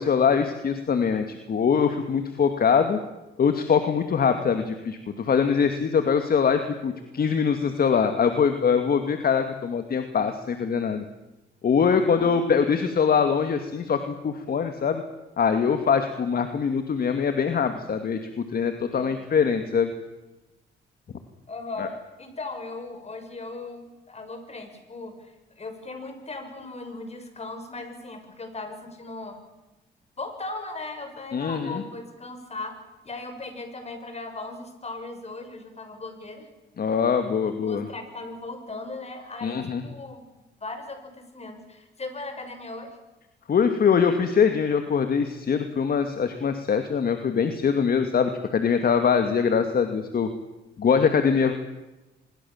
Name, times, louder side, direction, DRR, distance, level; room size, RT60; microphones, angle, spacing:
voice 1, 0.0-3.0 3.4-11.0 11.6-15.0 15.4-18.2 18.5-19.9 21.8-21.9 31.3-31.8 36.8-37.9 39.4-39.8 43.5-50.3 50.8-51.5, left 6 dB, 50° left, 7 dB, 2.4 m, -23 dB
voice 2, 12.0-12.4 18.9-19.3 21.5-29.4 30.2-32.8 33.0-36.5 37.6-40.3 40.6-43.0, left 3 dB, 30° left, 6 dB, 6.8 m, -38 dB
26.0 x 22.0 x 7.4 m, 1.0 s
cardioid pair, 90°, 20 cm